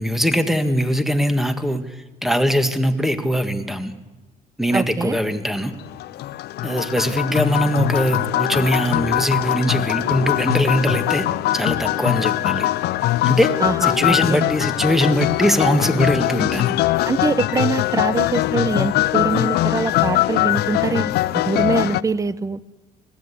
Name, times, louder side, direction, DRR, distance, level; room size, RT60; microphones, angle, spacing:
voice 1, 0.0-1.8 2.2-3.9 4.6-5.7 6.6-11.2 11.5-12.7 13.3-13.5 14.0-16.8, equal, ahead, 8 dB, 1.7 m, -21 dB
voice 2, 4.7-5.2 13.6-14.5 17.1-22.6, right 4 dB, 20° right, 17 dB, 0.8 m, -23 dB
sound 1, 5.8-22.0, left 15 dB, 75° left, 0.6 m, -21 dB
21.0 x 16.0 x 8.5 m, 1.2 s
cardioid pair, 110°, 17 cm